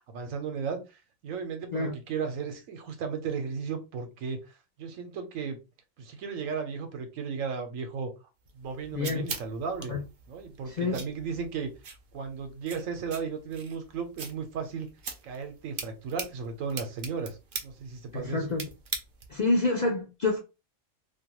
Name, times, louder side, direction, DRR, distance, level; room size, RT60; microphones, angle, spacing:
voice 1, 0.1-5.6 6.0-8.1 8.5-10.0 10.3-11.7 12.1-14.9 15.2-17.4 17.6-18.5, right 5 dB, 85° right, 1.1 m, -35 dB
sound 1, 8.5-19.5, right 5 dB, 55° right, 0.5 m, -42 dB
voice 2, 8.9-9.2 9.9-10.0 10.8-11.0 18.1-18.6 19.3-20.4, left 3 dB, 60° left, 0.4 m, -27 dB
2.5 x 2.3 x 2.9 m
omnidirectional pair, 1.4 m